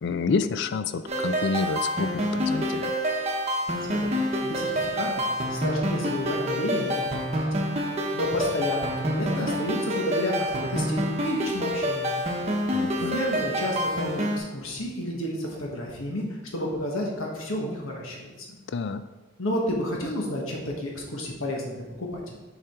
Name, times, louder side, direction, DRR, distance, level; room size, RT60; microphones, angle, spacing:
voice 1, 0.0-3.0 12.7-13.2 18.7-19.0, left 4 dB, 55° left, 11 dB, 0.4 m, -28 dB
sound 1, 1.1-14.4, equal, 30° right, 0.9 m, -27 dB
voice 2, 4.4-7.1 7.3-7.7 8.1-12.2 13.1-16.2 16.5-18.6 19.4-22.4, left 1 dB, 75° left, -1 dB, 1.4 m, -31 dB
7.3 x 4.9 x 3.7 m, 1.2 s
head